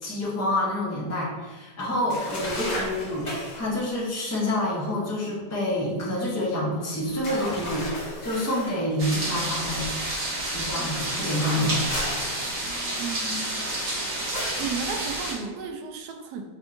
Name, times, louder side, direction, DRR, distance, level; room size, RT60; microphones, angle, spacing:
voice 1, 0.0-9.9 10.5-11.8, left 1 dB, 15° left, -6 dB, 0.6 m, -28 dB
sound 1, 2.1-3.7 7.2-8.8 11.1-12.9 14.4-14.7, left 1 dB, 75° left, 0.4 m, -34 dB
sound 2, 9.0-15.3, right 1 dB, 45° right, 1.2 m, -30 dB
voice 2, 13.0-13.6 14.3-16.4, right 5 dB, 70° right, 3 dB, 1.0 m, -34 dB
4.7 x 3.5 x 2.5 m, 1.3 s
omnidirectional pair, 1.9 m